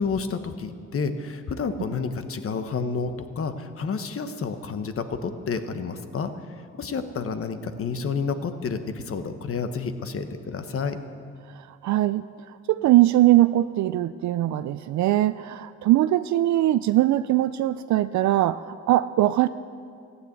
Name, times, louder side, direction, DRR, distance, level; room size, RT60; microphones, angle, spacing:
voice 1, 0.0-6.3 6.7-11.0, left 5 dB, 45° left, 9 dB, 1.2 m, -30 dB
voice 2, 11.5-19.5, right 15 dB, 70° right, 13 dB, 0.4 m, -21 dB
15.0 x 9.8 x 8.2 m, 2.3 s
cardioid pair, 90°, 30 cm